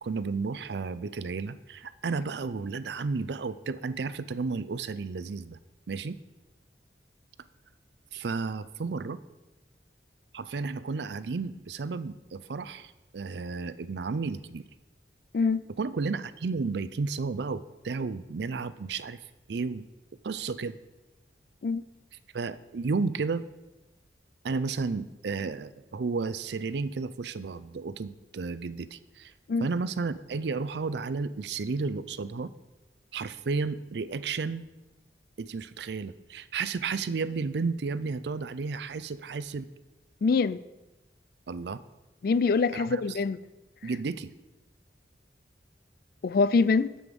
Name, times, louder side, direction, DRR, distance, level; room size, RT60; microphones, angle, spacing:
voice 1, 0.0-5.6 5.9-6.2 8.1-9.2 10.3-14.7 15.8-19.2 19.5-19.8 20.2-20.8 22.3-23.4 24.4-29.3 29.6-32.5 33.1-34.7 35.4-39.7 41.5-41.8 42.7-43.2 43.8-44.3, right 4 dB, 70° right, 0.5 m, -32 dB
voice 2, 40.2-40.6 42.2-43.4 46.2-46.9, left 4 dB, 55° left, 0.4 m, -24 dB
8.1 x 7.8 x 5.3 m
head